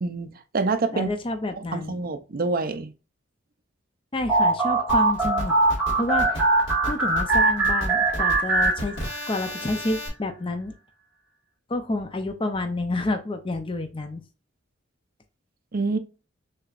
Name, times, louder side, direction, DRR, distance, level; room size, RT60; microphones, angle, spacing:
voice 1, 0.0-1.1 1.6-2.9 15.7-16.0, right 3 dB, 50° right, 0.6 m, -27 dB
voice 2, 0.9-2.0 4.1-5.5 6.0-6.4 6.9-9.0 9.3-10.7 11.7-14.2, left 2 dB, 25° left, 0.6 m, -29 dB
sound 1, 4.3-9.4, right 2 dB, 10° right, 1.8 m, -22 dB
sound 2, 4.9-10.1, equal, 65° left, 1.9 m, -34 dB
6.4 x 2.9 x 2.5 m
head